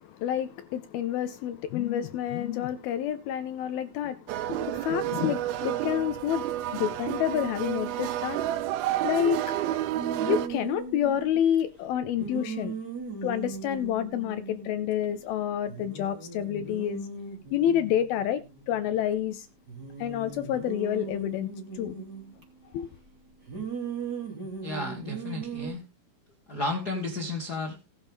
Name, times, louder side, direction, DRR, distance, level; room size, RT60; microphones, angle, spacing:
voice 1, 0.0-6.5 6.7-8.4 9.0-9.4 10.3-12.7 13.2-17.1 17.5-19.5 20.0-21.5 21.7-22.0 22.7-22.9, left 10 dB, 80° left, 11 dB, 2.3 m, -28 dB
sound 1, 4.3-10.5, right 13 dB, 75° right, 2.4 m, -30 dB
sound 2, 9.9-11.6 12.1-15.1 15.3-15.4 15.7-19.1 19.7-22.4 23.4-25.7, right 5 dB, 25° right, 3.4 m, -38 dB
voice 2, 24.6-25.8 26.5-27.8, left 2 dB, 40° left, 2 dB, 1.4 m, -32 dB
18.5 x 6.8 x 3.6 m, 0.27 s
omnidirectional pair, 4.8 m